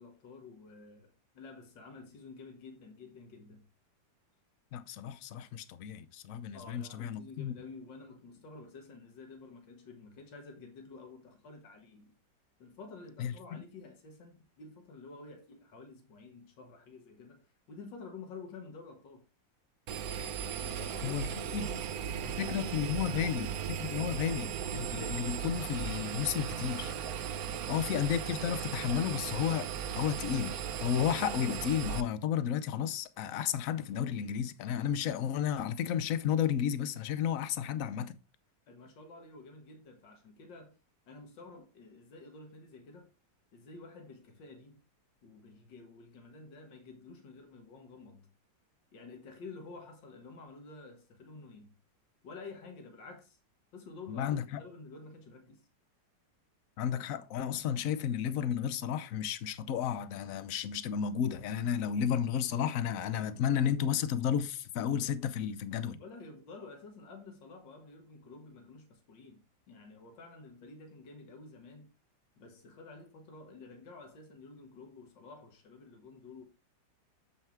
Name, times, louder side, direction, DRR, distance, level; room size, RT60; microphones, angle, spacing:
voice 1, 0.0-3.7 6.5-12.1 12.6-19.3 20.6-24.1 27.5-27.9 38.7-40.8 41.1-43.1 43.5-44.8 45.2-48.3 48.9-51.7 52.2-53.4 53.7-55.7 66.0-71.9 72.4-76.5, left 3 dB, 80° left, 2.1 m, -50 dB
voice 2, 4.7-7.5 13.2-13.6 21.0-21.3 21.5-21.7 22.4-26.9 27.7-29.7 30.0-38.1 54.1-54.4 56.8-66.0, left 9 dB, 60° left, 0.9 m, -32 dB
Engine, 19.9-32.0, right 8 dB, 65° right, 1.0 m, -37 dB
7.1 x 5.7 x 4.5 m
omnidirectional pair, 2.0 m